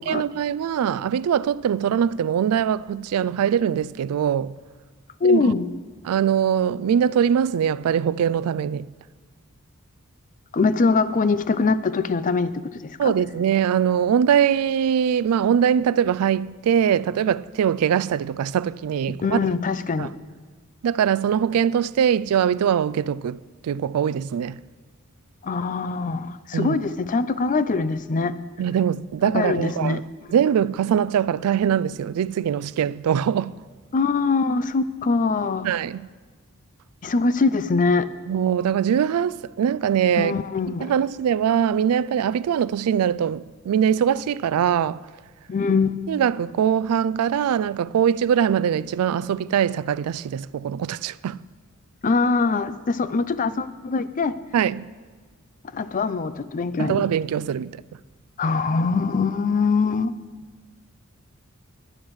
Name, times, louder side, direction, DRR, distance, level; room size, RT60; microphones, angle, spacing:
voice 1, 0.0-4.5 5.2-5.4 6.0-8.9 13.0-19.4 20.0-20.1 20.8-24.6 26.5-26.8 28.6-30.0 30.3-33.6 35.6-36.0 38.3-40.3 40.8-45.0 46.1-51.4 54.5-54.9 56.8-57.8, right 8 dB, 85° right, 0.3 m, -22 dB
voice 2, 5.2-5.7 10.5-13.1 19.2-20.1 25.4-28.3 29.3-30.0 33.9-35.7 37.0-38.1 40.2-40.9 45.5-45.9 52.0-54.4 55.7-57.1 58.4-60.1, left 4 dB, 35° left, 0.4 m, -23 dB
18.5 x 11.0 x 3.2 m
head